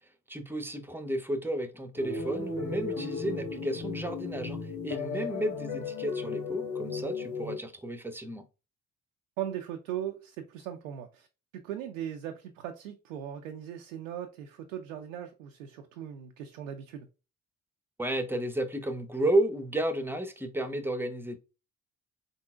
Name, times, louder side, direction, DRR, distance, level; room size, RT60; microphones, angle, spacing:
voice 1, 0.3-8.5 18.0-21.4, right 1 dB, 5° right, 0.8 m, -32 dB
sound 1, 2.0-7.6, left 4 dB, 85° left, 1.4 m, -35 dB
voice 2, 9.4-11.3 11.5-17.1, right 10 dB, 80° right, 0.5 m, -39 dB
4.1 x 3.9 x 2.3 m
figure-of-eight pair, 45°, 40 cm